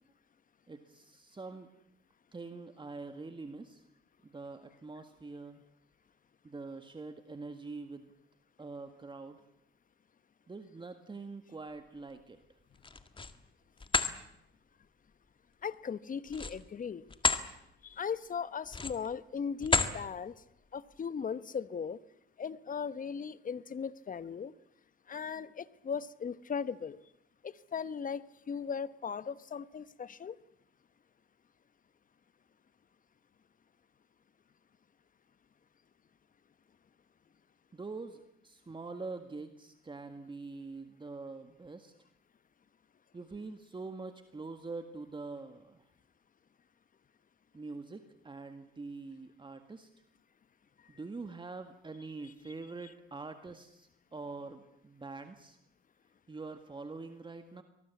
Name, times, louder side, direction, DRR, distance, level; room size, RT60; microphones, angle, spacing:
voice 1, 0.7-1.7 2.3-3.8 4.2-5.6 6.4-8.1 8.6-9.4 10.5-12.4 37.7-41.9 43.1-45.8 47.5-49.9 50.9-55.6 56.3-57.6, right 3 dB, 20° right, 7 dB, 1.8 m, -44 dB
sound 1, 12.7-13.4 13.8-14.1 16.3-17.5 17.9-18.1 18.7-19.1 19.6-20.0, left 4 dB, 25° left, 1.8 m, -30 dB
voice 2, 15.6-17.1 17.8-20.4 20.7-22.0 22.4-24.5 25.1-27.0 27.4-30.3, left 6 dB, 40° left, 16 dB, 1.1 m, -38 dB
24.0 x 19.5 x 8.4 m, 0.80 s
cardioid pair, 85°, 21 cm